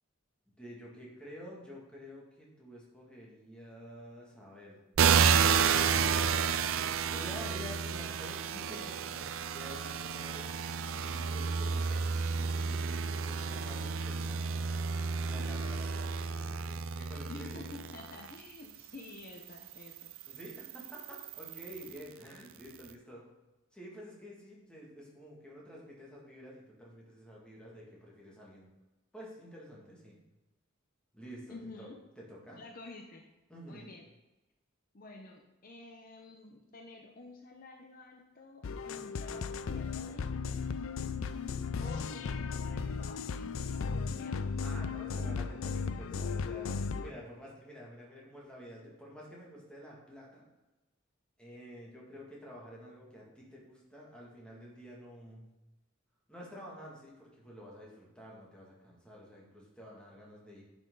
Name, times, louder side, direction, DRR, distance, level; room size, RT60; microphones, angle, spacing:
voice 1, 0.6-4.8 7.1-14.6 15.2-17.6 20.3-23.3 23.7-28.7 29.1-30.2 31.1-31.9 32.2-32.6 33.5-33.9 44.6-50.5 51.4-55.5 56.3-60.6, equal, 5° left, -4 dB, 2.2 m, -49 dB
sound 1, 5.0-18.3 19.0-22.0, right 6 dB, 90° right, 0.5 m, -31 dB
voice 2, 17.3-20.1 31.5-32.0 32.6-33.4 33.7-34.1 34.9-40.6 41.8-44.6, left 2 dB, 45° left, 2 dB, 0.8 m, -50 dB
sound 2, 38.6-47.1, left 5 dB, 80° left, 0.4 m, -36 dB
10.0 x 6.2 x 3.9 m, 1.0 s
head